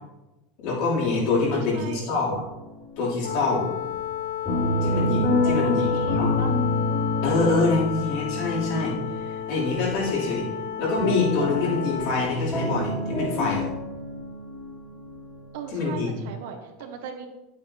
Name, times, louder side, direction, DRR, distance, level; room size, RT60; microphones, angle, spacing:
voice 1, 0.6-2.4 3.0-3.7 4.8-5.9 6.2-6.3 7.2-10.5 10.8-13.7 15.7-16.2, left 3 dB, 60° left, -5 dB, 3.3 m, -25 dB
voice 2, 1.4-2.2 5.4-6.5 15.5-17.3, right 6 dB, 75° right, 4 dB, 1.3 m, -38 dB
sound 1, 2.2-3.0 3.2-16.0, left 2 dB, 10° left, 2.1 m, -28 dB
Wind instrument woodwind instrument, 3.2-12.4, left 11 dB, 85° left, 0.3 m, -32 dB
9.6 x 8.5 x 2.9 m, 1.0 s
supercardioid pair, 155°, 0 cm